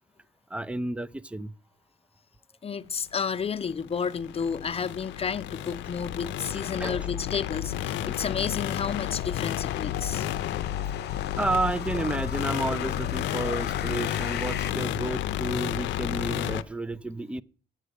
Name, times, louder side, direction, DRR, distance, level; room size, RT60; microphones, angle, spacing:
voice 1, 0.5-1.5 6.6-7.0 11.4-17.4, right 2 dB, 5° right, 0.4 m, -31 dB
voice 2, 2.6-10.3, left 6 dB, 30° left, 0.7 m, -31 dB
sound 1, 3.3-16.6, left 12 dB, 80° left, 0.5 m, -32 dB
sound 2, 5.1-14.7, left 10 dB, 60° left, 0.9 m, -41 dB
9.0 x 6.6 x 6.6 m
cardioid pair, 90°, 19 cm